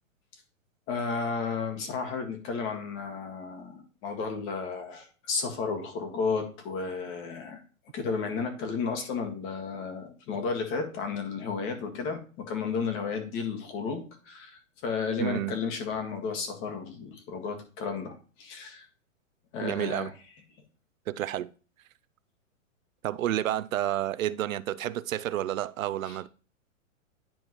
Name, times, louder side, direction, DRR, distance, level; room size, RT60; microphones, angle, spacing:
voice 1, 0.9-7.6 7.9-18.9 19.5-20.1 26.0-26.2, left 5 dB, 30° left, 1.9 m, -33 dB
voice 2, 15.2-15.5 19.6-20.1 21.1-21.5 23.0-26.3, right 12 dB, 80° right, 0.6 m, -30 dB
10.5 x 4.5 x 3.1 m
hypercardioid pair, 140°, 40 cm